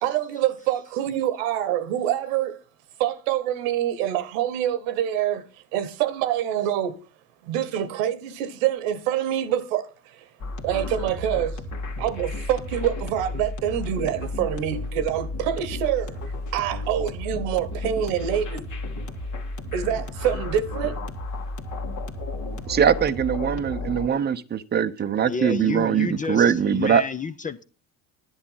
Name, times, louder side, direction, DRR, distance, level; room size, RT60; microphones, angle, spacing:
voice 1, 0.0-2.6 3.0-5.4 5.7-7.0 7.4-9.9 10.6-11.6 12.0-16.2 16.5-18.6 19.7-21.0, right 10 dB, 75° right, 1.3 m, -26 dB
sound 1, 10.4-24.1, left 2 dB, 45° left, 2.0 m, -33 dB
voice 2, 22.7-27.0, right 8 dB, 25° right, 0.8 m, -22 dB
voice 3, 25.3-27.6, left 5 dB, 20° left, 0.7 m, -30 dB
10.5 x 7.8 x 5.6 m
hypercardioid pair, 80°, 41 cm